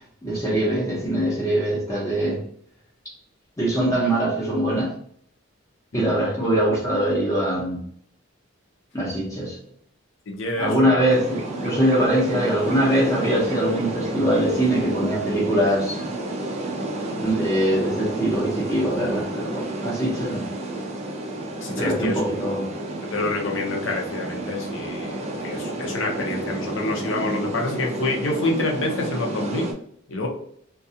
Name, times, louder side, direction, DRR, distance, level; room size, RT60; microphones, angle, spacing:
voice 1, 0.0-2.5 3.6-4.9 5.9-7.8 8.9-9.6 10.6-16.1 17.2-20.5 21.8-22.7, right 1 dB, 15° left, -5 dB, 0.6 m, -22 dB
voice 2, 10.3-11.0 21.6-22.2 23.0-29.7 30.1-30.3, left 2 dB, 70° left, 1 dB, 0.6 m, -27 dB
sound 1, 11.1-29.7, right 2 dB, 30° right, 0.4 m, -31 dB
2.4 x 2.3 x 2.7 m, 0.63 s
head